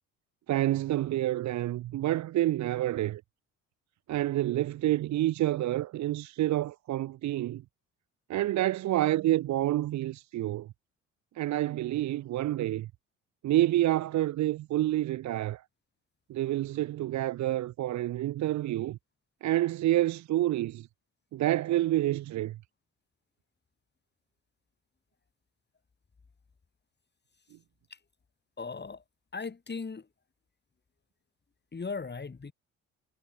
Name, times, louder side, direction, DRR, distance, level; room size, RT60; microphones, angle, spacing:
voice 1, 0.5-3.2 4.1-7.6 8.3-10.7 11.3-12.9 13.4-15.6 16.3-19.0 19.4-20.9 21.3-22.6, right 14 dB, 50° right, 0.6 m, -28 dB
voice 2, 28.6-29.0 29.3-30.1 31.7-32.5, left 4 dB, 25° left, 3.4 m, -37 dB
hypercardioid pair, 55°, 38 cm